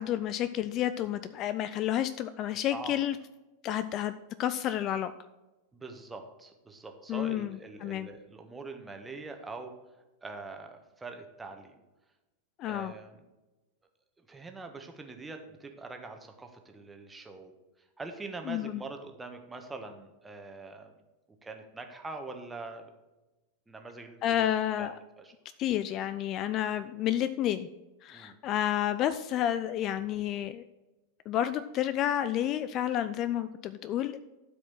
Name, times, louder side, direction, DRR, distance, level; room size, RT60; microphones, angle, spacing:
voice 1, 0.0-3.2 3.6-4.1 4.4-5.1 7.1-8.1 12.6-12.9 18.5-18.8 24.2-25.0 25.6-27.7 28.0-30.6 31.3-34.2, left 11 dB, 35° left, 13 dB, 0.4 m, -30 dB
voice 2, 2.5-2.9 5.7-9.7 10.2-11.7 12.7-13.2 14.3-17.5 18.0-20.9 21.4-22.9 23.7-24.4 24.8-24.9 25.2-25.3 28.1-28.4, right 3 dB, 10° right, 4 dB, 1.4 m, -43 dB
12.5 x 5.0 x 6.1 m, 1.1 s
figure-of-eight pair, 90°, 0 cm